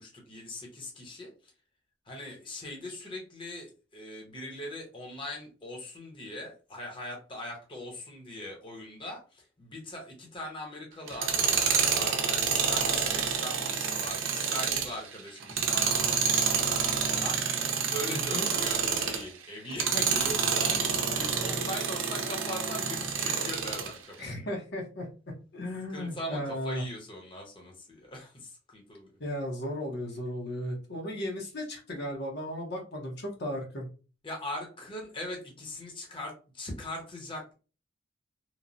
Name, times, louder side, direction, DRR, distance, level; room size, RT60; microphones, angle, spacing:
voice 1, 0.0-1.3 2.1-16.7 16.9-24.1 25.9-29.1 34.2-37.5, left 1 dB, 25° left, -1 dB, 0.8 m, -40 dB
Tools, 11.1-19.3 19.7-23.9, right 6 dB, 80° right, 0.6 m, -28 dB
voice 2, 18.1-18.5 24.2-25.1 25.5-26.8 29.2-33.9, equal, 55° left, 0 dB, 0.8 m, -35 dB
3.0 x 2.1 x 2.5 m, 0.34 s
head